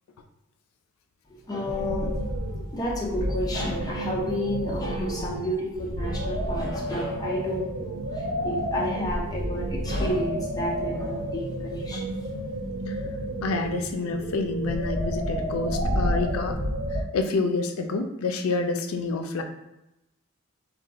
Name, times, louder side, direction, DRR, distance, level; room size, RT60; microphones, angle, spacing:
voice 1, 1.3-12.1, left 1 dB, 20° left, -3 dB, 0.5 m, -31 dB
sound 1, 1.6-17.0, equal, 80° right, 0.6 m, -30 dB
voice 2, 13.4-16.6 17.1-19.4, left 3 dB, 80° left, 6 dB, 0.4 m, -28 dB
2.5 x 2.3 x 3.9 m, 0.90 s
head